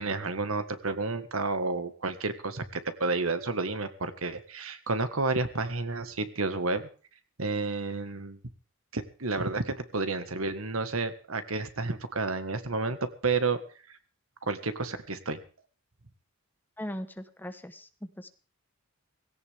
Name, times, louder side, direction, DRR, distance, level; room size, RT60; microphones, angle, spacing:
voice 1, 0.0-6.9 7.4-8.4 8.9-13.6 14.4-15.4, right 3 dB, 80° right, 10 dB, 1.8 m, -31 dB
voice 2, 16.8-18.3, equal, 10° left, 9 dB, 1.2 m, -39 dB
18.0 x 17.0 x 3.6 m, 0.38 s
head